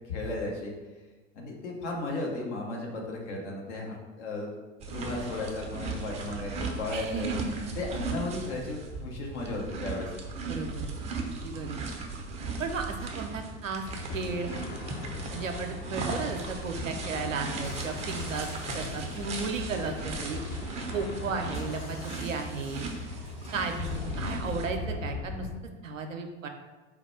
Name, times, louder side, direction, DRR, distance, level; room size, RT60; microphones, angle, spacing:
voice 1, 0.1-0.7 1.3-4.5 4.9-7.3 7.7-10.1, left 2 dB, 65° left, -1 dB, 1.0 m, -35 dB
sound 1, 4.8-24.7, right 3 dB, 20° right, 0.4 m, -38 dB
voice 2, 6.9-7.7 10.5-10.9 11.4-11.8 12.6-13.8 14.1-14.5 15.3-18.5 18.7-20.4 20.9-22.9 23.5-26.5, right 4 dB, 85° right, 4 dB, 0.5 m, -34 dB
sound 2, 13.8-25.5, left 2 dB, 35° left, 0.7 m, -38 dB
3.8 x 2.3 x 4.3 m, 1.2 s
figure-of-eight pair, 85°, 38 cm